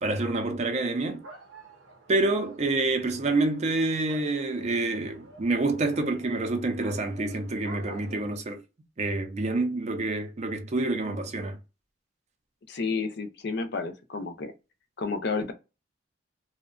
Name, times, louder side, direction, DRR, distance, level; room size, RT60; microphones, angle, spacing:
voice 1, 0.0-1.2 2.1-8.6 9.0-11.6, right 2 dB, 35° right, 0.4 m, -27 dB
sound 1, 0.7-8.3, right 2 dB, 90° right, 0.8 m, -49 dB
voice 2, 12.7-14.5 15.0-15.5, left 4 dB, 60° left, 0.5 m, -31 dB
2.6 x 2.1 x 2.4 m
head